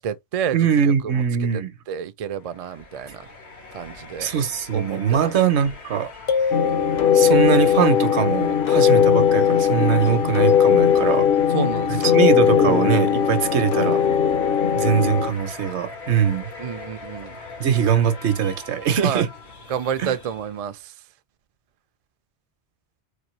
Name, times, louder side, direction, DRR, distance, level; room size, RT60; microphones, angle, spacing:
voice 1, 0.0-0.6 0.8-1.2 1.9-3.3 3.7-4.3 4.7-5.3 11.5-12.2 16.6-17.4 19.0-19.3 19.7-20.9, right 8 dB, 60° right, 0.3 m, -29 dB
voice 2, 0.5-1.7 4.2-6.1 7.1-11.3 11.9-14.0 14.7-16.5 17.6-19.3 20.0-20.1, right 8 dB, 80° right, 1.0 m, -21 dB
sound 1, 2.3-20.8, left 4 dB, 75° left, 1.4 m, -41 dB
sound 2, 6.3-7.8, left 5 dB, 35° left, 0.5 m, -26 dB
sound 3, 6.5-15.3, left 8 dB, 60° left, 0.9 m, -19 dB
4.2 x 2.6 x 3.0 m
omnidirectional pair, 1.1 m